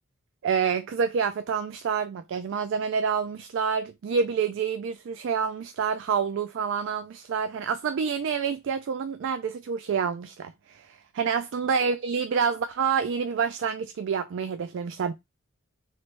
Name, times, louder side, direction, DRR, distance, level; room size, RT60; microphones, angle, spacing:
voice 1, 0.4-15.1, right 6 dB, 55° right, 0.3 m, -28 dB
3.3 x 3.0 x 4.2 m
head